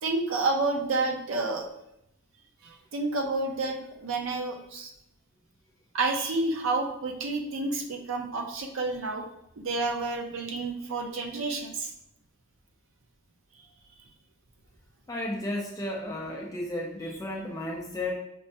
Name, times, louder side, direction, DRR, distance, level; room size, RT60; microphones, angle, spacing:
voice 1, 0.0-1.7 2.6-4.9 5.9-9.2 9.6-11.9, right 3 dB, 70° right, 3 dB, 0.5 m, -30 dB
voice 2, 15.1-18.1, left 1 dB, 15° left, -2 dB, 0.4 m, -33 dB
5.2 x 2.2 x 2.6 m, 0.80 s
head